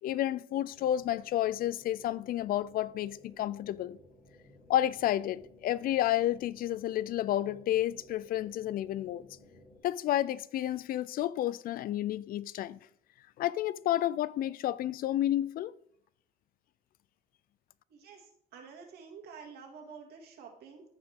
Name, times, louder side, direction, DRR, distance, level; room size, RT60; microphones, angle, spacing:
voice 1, 0.0-4.0 4.7-9.3 9.8-12.8 13.4-15.7, left 13 dB, 60° left, 0.4 m, -31 dB
sound 1, 0.7-9.8, left 1 dB, 25° left, 3.8 m, -58 dB
voice 2, 17.9-20.8, right 5 dB, 70° right, 2.5 m, -49 dB
14.5 x 4.9 x 3.6 m
cardioid pair, 110°, 17 cm